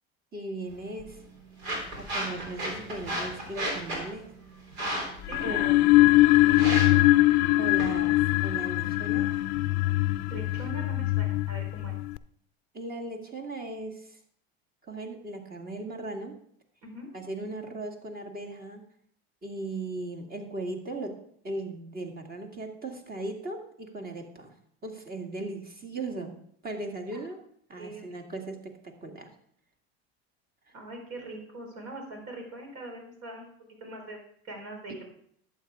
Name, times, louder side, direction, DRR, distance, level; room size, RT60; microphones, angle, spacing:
voice 1, 0.3-1.2 1.9-4.3 5.4-5.6 7.6-9.3 12.7-14.2 14.8-16.4 17.1-18.8 19.4-21.2 21.4-24.5 24.8-26.4 26.6-27.4 27.7-29.3, right 2 dB, 30° right, 2 dB, 2.0 m, -37 dB
sound 1, 0.6-10.6, right 1 dB, 80° right, 3.8 m, -37 dB
sound 2, 5.2-12.2, left 18 dB, 60° left, 0.5 m, -22 dB
voice 2, 5.3-7.2 10.3-12.0 16.8-17.1 27.1-27.2 27.8-28.3 30.7-33.5 33.8-35.1, right 1 dB, 60° right, 2 dB, 4.2 m, -42 dB
12.0 x 7.9 x 3.6 m, 0.64 s
supercardioid pair, 95°, 32 cm